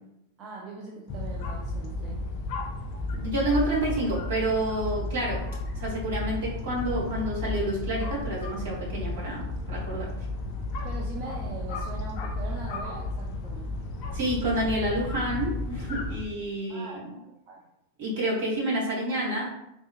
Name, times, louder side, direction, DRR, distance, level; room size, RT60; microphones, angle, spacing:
voice 1, 0.4-2.3 10.8-13.8 16.7-17.7, right 3 dB, 30° right, -3 dB, 0.4 m, -41 dB
sound 1, 1.1-16.2, left 2 dB, 45° left, 0.5 m, -33 dB
voice 2, 3.1-5.4 5.8-10.1 14.1-17.0 18.0-19.5, right 1 dB, 55° right, -4 dB, 1.3 m, -29 dB
3.6 x 2.5 x 2.4 m, 0.82 s
figure-of-eight pair, 90°, 0 cm